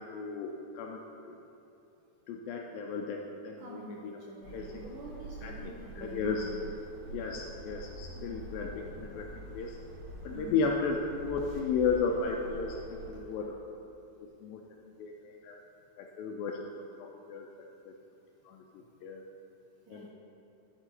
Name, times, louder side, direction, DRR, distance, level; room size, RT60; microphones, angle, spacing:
voice 1, 0.0-1.4 2.3-4.0 4.5-4.8 5.4-6.5 7.1-9.8 10.2-12.8 13.1-13.6 14.4-14.6 15.0-15.6 16.0-16.7 17.0-17.5 17.9-18.0 18.5-18.6 19.0-19.2 19.9-20.1, left 5 dB, 80° left, 1 dB, 2.1 m, -34 dB
voice 2, 3.6-6.9 8.1-8.3 10.3-10.6 19.9-20.1, right 1 dB, 75° right, -4 dB, 1.8 m, -47 dB
sound 1, 4.4-13.1, right 2 dB, 55° right, 2.5 m, -46 dB
12.0 x 4.3 x 4.4 m, 2.8 s
omnidirectional pair, 4.4 m